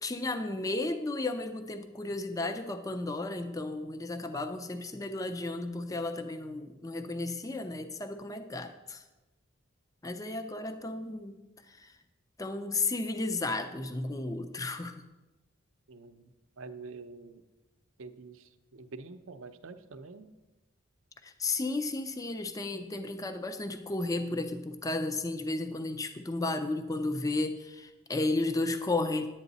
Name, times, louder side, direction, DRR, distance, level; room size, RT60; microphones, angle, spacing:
voice 1, 0.0-9.0 10.0-11.4 11.7-11.9 12.4-15.0 21.2-29.3, left 2 dB, 15° left, 8 dB, 0.5 m, -33 dB
voice 2, 15.9-16.3 16.6-17.4 18.0-20.3, right 4 dB, 75° right, 9 dB, 0.6 m, -46 dB
10.5 x 8.8 x 4.0 m, 1.1 s
head